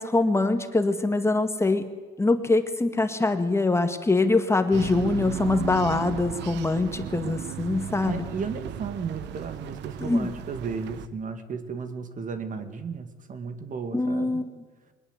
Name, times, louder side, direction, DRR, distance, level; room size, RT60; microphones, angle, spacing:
voice 1, 0.0-1.8 2.2-8.2 10.0-10.3 13.9-14.6, left 2 dB, 15° left, 8 dB, 1.9 m, -24 dB
sound 1, 4.7-11.1, right 11 dB, 70° right, 1.0 m, -35 dB
voice 2, 8.0-14.4, right 5 dB, 45° right, 9 dB, 2.3 m, -34 dB
22.0 x 20.0 x 8.3 m, 1.3 s
cardioid pair, 95°, 18 cm